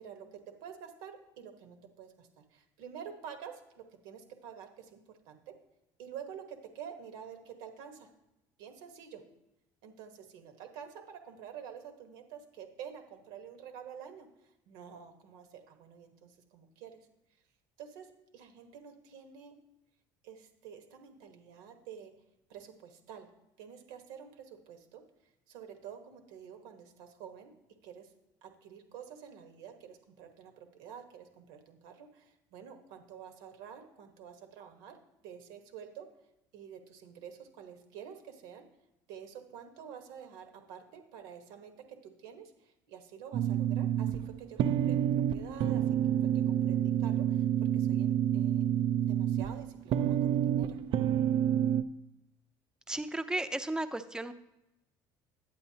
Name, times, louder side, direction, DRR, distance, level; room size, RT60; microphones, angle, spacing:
voice 1, 0.0-5.5 6.0-8.1 8.6-9.2 9.8-17.1 17.8-19.6 20.2-22.1 22.5-23.3 23.6-25.0 25.5-27.5 27.8-28.1 28.4-35.0 35.2-36.1 36.5-38.6 39.1-45.8 46.2-47.5 47.7-48.7 49.1-50.8, right 8 dB, 80° right, 5 dB, 1.3 m, -49 dB
sound 1, 43.3-51.8, right 10 dB, 55° right, 0.4 m, -28 dB
voice 2, 52.9-54.3, right 1 dB, 5° right, 10 dB, 0.6 m, -34 dB
9.9 x 8.3 x 2.8 m, 0.90 s
supercardioid pair, 85°, 10 cm